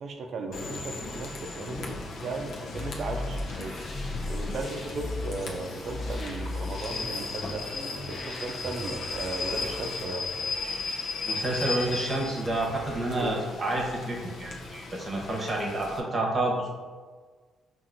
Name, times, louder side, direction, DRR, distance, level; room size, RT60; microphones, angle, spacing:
voice 1, 0.0-3.8 4.3-7.7 8.1-10.3 13.2-13.3, right 3 dB, 60° right, 4 dB, 0.5 m, -36 dB
Rain / Train, 0.5-16.0, left 3 dB, 75° left, 0.6 m, -36 dB
sound 1, 2.7-10.0, left 2 dB, 45° left, 0.8 m, -37 dB
voice 2, 11.3-16.7, right 1 dB, 30° right, -2 dB, 0.9 m, -29 dB
5.6 x 2.6 x 2.5 m, 1.5 s
cardioid pair, 110°, 0 cm